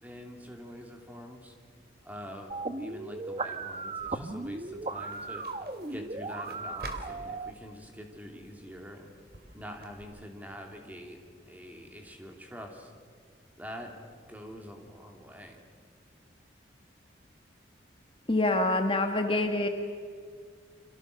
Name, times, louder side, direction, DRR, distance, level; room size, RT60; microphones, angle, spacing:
voice 1, 0.0-1.5 2.0-5.4 5.9-9.1 9.5-11.2 11.5-12.9 13.6-13.9 14.3-15.6, equal, 10° right, 2 dB, 3.0 m, -45 dB
sound 1, 2.5-7.5, right 3 dB, 35° right, 1.0 m, -36 dB
Putting down a folded newspaper, 3.9-10.0, right 1 dB, 55° right, 3.0 m, -49 dB
voice 2, 18.3-19.7, left 2 dB, 30° left, 5 dB, 1.4 m, -26 dB
29.5 x 25.0 x 6.8 m, 2.1 s
head